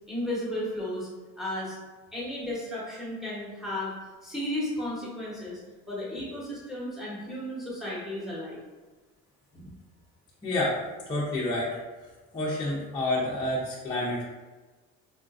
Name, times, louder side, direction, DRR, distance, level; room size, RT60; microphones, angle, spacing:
voice 1, 0.1-1.1 1.4-1.8 2.1-3.9 4.2-5.6 5.9-8.6, left 1 dB, ahead, -7 dB, 0.7 m, -34 dB
voice 2, 10.4-10.8 11.1-11.8 12.3-14.2, left 1 dB, 15° left, -6 dB, 0.3 m, -29 dB
3.8 x 2.4 x 2.3 m, 1.2 s
cardioid pair, 170°, 33 cm